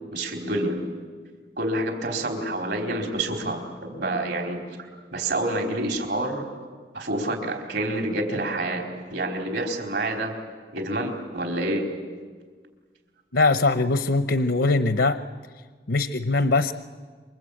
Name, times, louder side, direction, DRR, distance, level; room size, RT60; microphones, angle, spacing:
voice 1, 0.1-0.8 1.6-4.6 5.1-6.5 6.9-10.4 10.7-11.9, right 1 dB, 80° right, 3 dB, 4.4 m, -28 dB
voice 2, 13.3-15.2 15.9-16.7, left 3 dB, 80° left, 11 dB, 0.9 m, -21 dB
28.0 x 24.0 x 8.6 m, 1.6 s
head